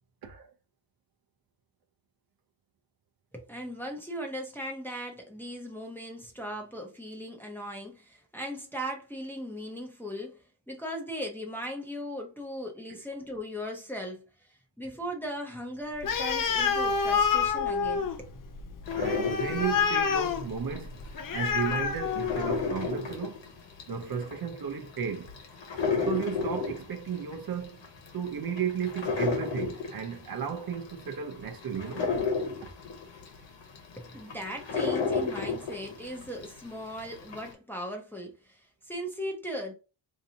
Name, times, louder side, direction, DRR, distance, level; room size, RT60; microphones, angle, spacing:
voice 1, 0.2-0.5 12.9-13.0 19.0-21.0 21.3-23.4 23.9-25.3 25.9-27.8 28.1-32.1 32.6-32.7, right 7 dB, 50° right, 0.6 m, -34 dB
voice 2, 3.3-18.3 34.0-39.7, equal, 5° left, 0.7 m, -38 dB
Animal, 16.0-22.8, left 6 dB, 45° left, 0.5 m, -28 dB
sound 1, 18.9-21.1 21.5-36.6 37.0-37.5, left 5 dB, 70° left, 1.1 m, -32 dB
3.9 x 2.8 x 2.7 m
wide cardioid pair, 180°, 46 cm